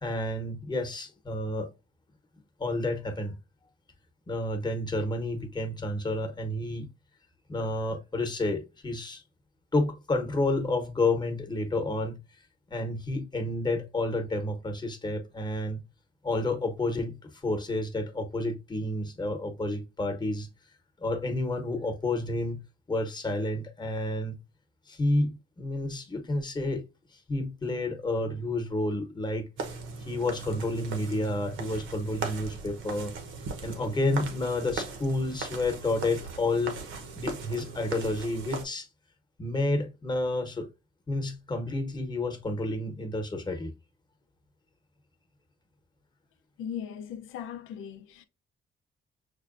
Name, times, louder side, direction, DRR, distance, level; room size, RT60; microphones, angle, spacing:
voice 1, 0.0-1.7 2.6-3.3 4.3-6.9 7.5-9.2 9.7-12.2 12.7-15.8 16.2-20.5 21.0-22.6 22.9-24.4 24.9-26.8 27.1-29.5 30.1-33.1 33.6-36.8 37.2-38.9 39.4-40.7 41.1-43.7, left 2 dB, 20° left, 1.0 m, -30 dB
sound 1, 29.6-38.6, right 4 dB, 80° right, 0.9 m, -39 dB
voice 2, 46.6-48.3, left 9 dB, 85° left, 0.6 m, -38 dB
6.3 x 2.2 x 2.5 m
cardioid pair, 90°, 20 cm